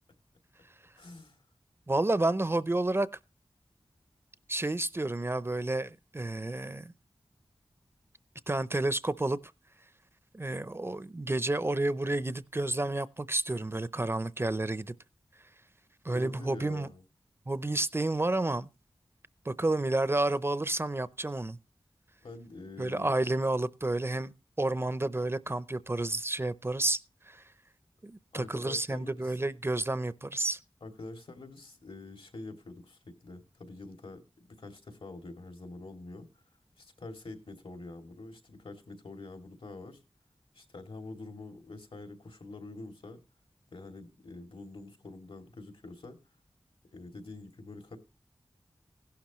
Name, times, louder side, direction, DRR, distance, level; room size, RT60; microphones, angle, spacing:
voice 1, 1.0-1.4 16.1-17.0 22.2-23.1 28.3-29.4 30.8-36.3 36.8-40.0 40.5-43.2 43.7-46.2 46.9-48.0, left 2 dB, 70° left, 2.6 m, -46 dB
voice 2, 1.9-3.1 4.5-6.9 8.5-9.4 10.3-14.9 16.0-16.9 17.5-18.7 19.4-21.6 22.8-24.3 24.6-27.0 27.3-27.4 28.0-30.6, right 2 dB, 25° right, 0.6 m, -30 dB
16.0 x 11.5 x 3.1 m
wide cardioid pair, 75°, 9 cm